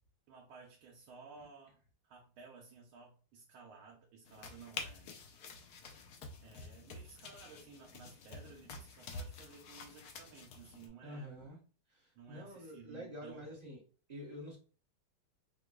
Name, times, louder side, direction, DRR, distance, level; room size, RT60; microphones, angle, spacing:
voice 1, 0.3-5.2 6.4-11.4 12.1-13.5, right 5 dB, 90° right, -1 dB, 1.5 m, -55 dB
sound 1, 4.3-10.9, left 4 dB, 75° left, 0.9 m, -48 dB
voice 2, 11.0-11.6 11.9-13.8 14.1-14.6, equal, 25° right, -4 dB, 0.9 m, -47 dB
5.1 x 2.3 x 2.2 m, 0.38 s
omnidirectional pair, 2.2 m